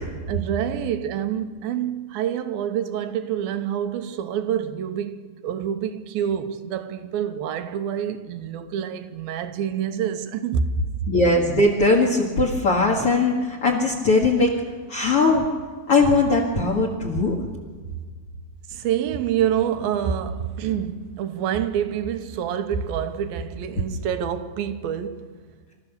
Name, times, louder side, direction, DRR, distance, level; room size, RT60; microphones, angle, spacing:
voice 1, 0.3-11.1 18.7-25.5, right 8 dB, 80° right, 2.7 m, -27 dB
voice 2, 11.1-14.6 14.9-15.4 15.9-17.4, left 2 dB, 45° left, 2.2 m, -20 dB
29.0 x 14.0 x 6.9 m
omnidirectional pair, 4.4 m